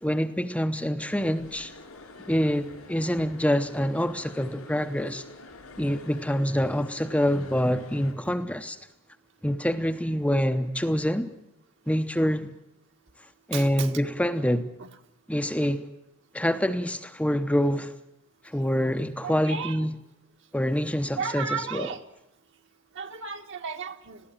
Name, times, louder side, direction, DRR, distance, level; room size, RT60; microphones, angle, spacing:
voice 1, 0.0-1.7 2.3-5.2 5.8-8.8 9.4-11.3 11.9-12.5 13.5-14.7 15.3-15.9 16.3-17.9 18.4-19.9 20.5-21.9, equal, 5° left, 0.8 m, -26 dB
sound 1, 1.2-8.1, left 2 dB, 85° left, 4.4 m, -47 dB
voice 2, 13.5-13.9 14.8-14.9 19.2-19.8 21.2-22.0 22.9-24.2, right 5 dB, 60° right, 1.7 m, -34 dB
21.5 x 15.5 x 9.0 m
head